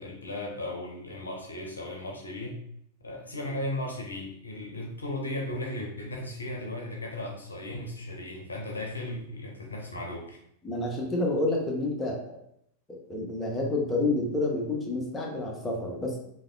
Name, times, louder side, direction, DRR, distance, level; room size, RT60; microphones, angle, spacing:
voice 1, 0.0-2.6 3.0-10.4, left 1 dB, 75° left, -1 dB, 0.5 m, -36 dB
voice 2, 10.6-12.2 12.9-16.2, left 2 dB, 15° left, -1 dB, 0.7 m, -29 dB
3.4 x 2.2 x 2.3 m, 0.72 s
figure-of-eight pair, 90°, 0 cm